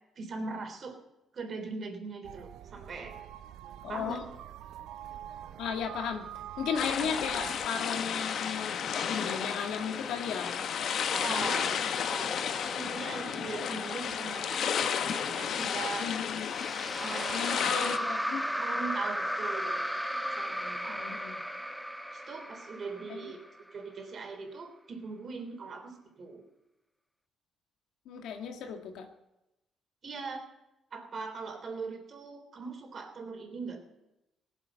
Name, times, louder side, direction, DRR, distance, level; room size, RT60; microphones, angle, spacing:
voice 1, 0.2-1.0 1.3-3.2 3.9-4.2 7.0-7.1 11.1-16.1 17.0-17.7 18.6-19.9 20.3-21.1 22.1-23.4 23.7-26.5 30.0-30.4 30.9-33.8, right 4 dB, 50° right, 4 dB, 3.4 m, -40 dB
sound 1, 2.2-7.7, right 11 dB, 85° right, 0.6 m, -45 dB
voice 2, 3.8-4.2 5.6-6.3 6.6-8.8 9.1-10.5 16.0-16.5 17.3-18.4 20.9-21.4 23.1-23.3 28.1-29.1, left 7 dB, 85° left, 4 dB, 1.8 m, -35 dB
sound 2, 6.7-18.0, left 7 dB, 65° left, 1.0 m, -32 dB
sound 3, 16.4-23.7, equal, ahead, 0.9 m, -35 dB
18.0 x 7.8 x 8.0 m, 0.93 s
cardioid pair, 90°, 0 cm